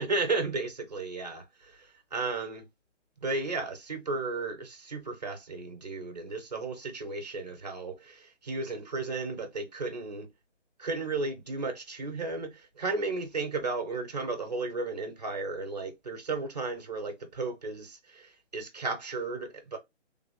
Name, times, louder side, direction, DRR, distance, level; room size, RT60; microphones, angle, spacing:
voice 1, 0.0-2.7 3.2-10.3 10.8-19.8, right 3 dB, 35° right, 0.9 m, -34 dB
3.6 x 2.2 x 3.6 m
hypercardioid pair, 175°, 36 cm